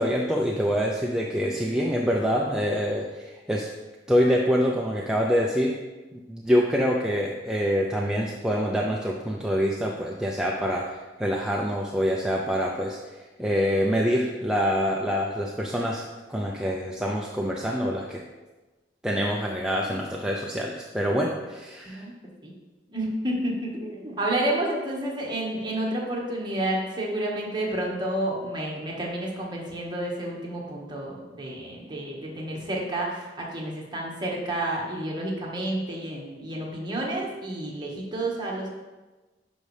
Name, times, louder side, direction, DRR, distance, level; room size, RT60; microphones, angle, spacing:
voice 1, 0.0-3.7 4.1-5.7 6.1-10.9 11.2-13.0 13.4-18.2 19.0-22.0, equal, 5° right, -2 dB, 0.5 m, -25 dB
voice 2, 21.8-22.1 22.4-22.5 22.9-38.7, right 1 dB, 25° right, -3 dB, 1.6 m, -30 dB
10.5 x 5.3 x 3.3 m, 1.2 s
head